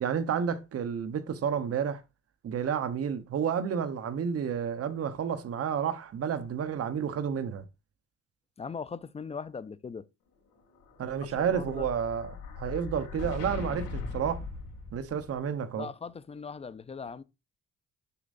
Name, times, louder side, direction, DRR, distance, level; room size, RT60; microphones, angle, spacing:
voice 1, 0.0-2.0 2.4-7.6 11.0-14.4 14.9-15.9, right 7 dB, 50° right, 0.9 m, -31 dB
voice 2, 8.6-10.0 11.5-11.9 15.7-17.2, left 5 dB, 20° left, 0.4 m, -39 dB
Explosion, 10.7-15.4, left 4 dB, 85° left, 2.5 m, -39 dB
6.8 x 6.3 x 2.6 m
cardioid pair, 90°, 30 cm